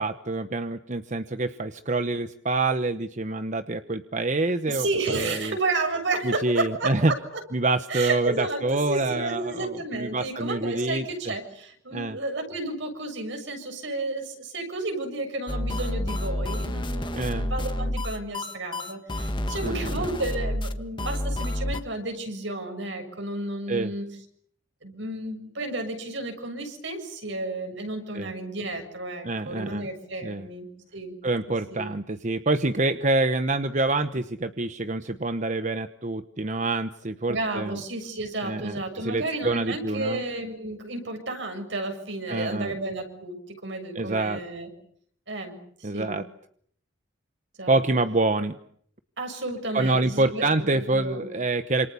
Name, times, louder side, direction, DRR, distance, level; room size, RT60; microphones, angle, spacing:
voice 1, 0.0-5.6 6.2-7.1 7.5-11.1 11.9-12.2 17.1-17.5 19.6-20.1 23.7-23.9 28.1-28.3 29.2-29.9 30.2-30.5 31.2-37.8 38.4-40.2 42.3-42.8 43.9-44.4 45.8-46.2 47.7-48.6 49.7-51.9, right 2 dB, 40° right, 10 dB, 1.1 m, -26 dB
voice 2, 4.7-7.1 7.9-24.1 24.8-30.7 30.9-31.1 31.7-31.9 37.3-44.7 45.3-46.2 47.6-47.7 49.2-50.4 50.7-51.3, right 2 dB, 70° right, 5 dB, 7.1 m, -32 dB
sound 1, 15.5-21.8, left 1 dB, 25° left, 1.7 m, -29 dB
28.5 x 27.5 x 7.0 m, 0.65 s
head